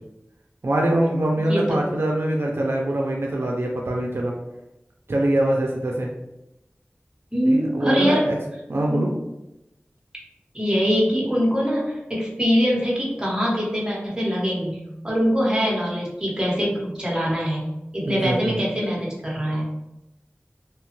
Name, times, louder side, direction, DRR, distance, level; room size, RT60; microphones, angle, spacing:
voice 1, 0.6-4.3 5.1-6.1 7.5-8.4 8.7-9.1 18.1-18.6, right 1 dB, 65° right, -1 dB, 0.4 m, -23 dB
voice 2, 1.5-1.8 7.3-8.3 8.9-9.0 10.5-14.8 15.0-17.7 17.9-19.6, equal, 15° right, -4 dB, 1.0 m, -23 dB
2.8 x 2.2 x 2.9 m, 0.93 s
wide cardioid pair, 55°, 4 cm